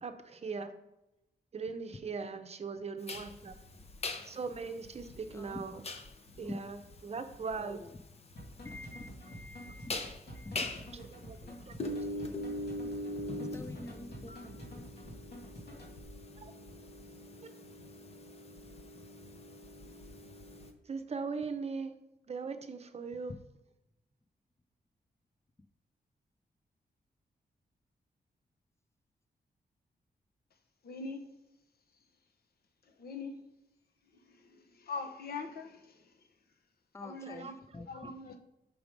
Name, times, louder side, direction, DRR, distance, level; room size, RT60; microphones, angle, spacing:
voice 1, 0.0-0.7 1.5-3.6 4.2-5.7 6.4-6.8 7.0-7.8 11.3-11.4 11.7-11.8 16.4-16.5 20.9-22.0 22.3-23.4 37.2-37.5 37.9-38.1, right 4 dB, 40° right, 0.7 m, -39 dB
sound 1, 3.1-20.7, left 2 dB, 40° left, 0.7 m, -42 dB
voice 2, 5.3-5.6 6.4-6.5 7.5-8.0 8.6-10.0 10.3-10.8 11.4-11.6 12.1-12.3 13.4-14.8 23.1-23.4 36.9-38.1, left 2 dB, 15° left, 0.4 m, -48 dB
sound 2, 8.4-16.0, equal, 90° left, 2.2 m, -49 dB
voice 3, 30.8-31.3 33.0-33.4 34.1-36.1 37.0-37.6 37.9-38.4, left 4 dB, 70° left, 0.9 m, -43 dB
6.2 x 4.7 x 5.2 m
wide cardioid pair, 140°, 17 cm